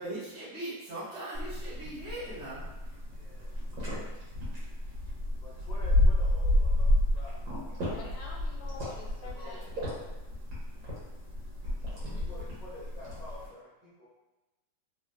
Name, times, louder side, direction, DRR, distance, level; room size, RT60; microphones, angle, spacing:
voice 1, 0.0-2.7, right 1 dB, 55° right, -11 dB, 1.8 m, -39 dB
sound 1, 1.3-13.5, left 1 dB, 75° right, 1.7 m, -30 dB
voice 2, 3.1-3.6 5.4-8.1 9.2-9.6 11.9-14.1, left 2 dB, 60° left, -10 dB, 0.4 m, -49 dB
voice 3, 7.9-10.2, left 3 dB, 85° left, 0 dB, 1.3 m, -47 dB
3.5 x 2.3 x 2.5 m, 1.1 s
omnidirectional pair, 2.1 m